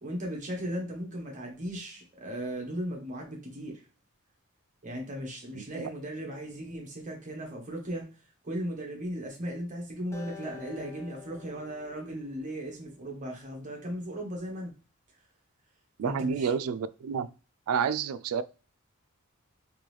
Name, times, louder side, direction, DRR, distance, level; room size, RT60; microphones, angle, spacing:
voice 1, 0.0-3.7 4.8-8.1 8.4-14.7 16.0-16.5, equal, 35° right, 0 dB, 1.3 m, -37 dB
voice 2, 5.5-5.9 16.0-17.3 17.7-18.4, right 6 dB, 90° right, 14 dB, 0.3 m, -30 dB
Acoustic guitar, 10.1-13.5, left 6 dB, 15° left, 0.6 m, -49 dB
3.8 x 3.1 x 3.3 m, 0.35 s
head